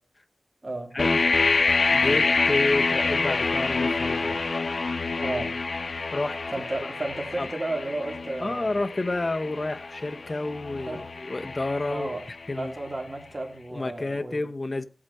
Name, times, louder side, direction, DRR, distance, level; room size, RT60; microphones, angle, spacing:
sound 1, 1.0-12.8, left 3 dB, 70° left, 1.0 m, -27 dB
voice 1, 1.9-4.4 6.1-6.4 7.4-7.5 8.4-12.2 12.5-12.7 13.7-14.9, left 2 dB, 40° left, 0.8 m, -29 dB
voice 2, 5.2-5.5 6.5-8.7 10.9-11.0 11.9-12.2 12.5-14.4, right 2 dB, 35° right, 3.1 m, -33 dB
16.5 x 8.7 x 4.2 m
wide cardioid pair, 85°, 0 cm